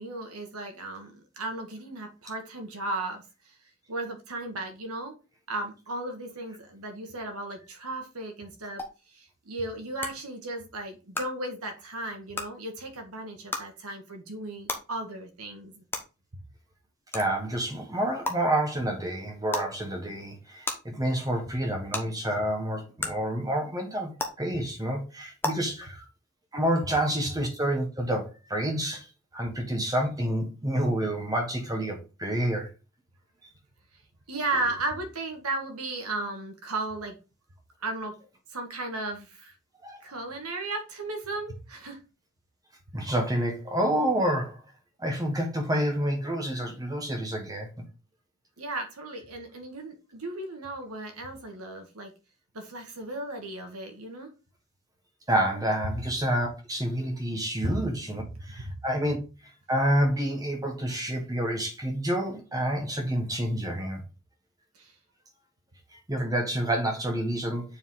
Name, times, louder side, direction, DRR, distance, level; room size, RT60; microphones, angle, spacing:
voice 1, 0.0-3.2 3.9-5.1 5.5-8.8 9.1-15.8 34.3-37.2 37.8-38.1 38.5-39.5 40.0-42.0 48.6-52.1 52.5-54.3 58.2-58.3 58.6-58.7 64.8-64.9, right 2 dB, 85° right, 1.7 m, -35 dB
sound 1, 8.8-8.9 10.0-10.1 11.1-11.2 12.3-12.4 13.5-13.6 14.7-14.8 15.9-16.0 17.1-17.2 18.2-18.3 19.5-19.7 20.6-20.7 21.9-22.0 23.0-23.1 24.2-24.3 25.4-25.5, left 2 dB, 10° left, 0.9 m, -30 dB
voice 2, 17.1-24.1 24.4-26.0 26.5-29.1 29.3-32.7 39.8-40.0 42.9-44.6 45.0-47.7 55.3-59.2 59.7-64.0 65.9-67.6, right 1 dB, 15° right, 1.3 m, -28 dB
7.0 x 4.6 x 3.7 m
head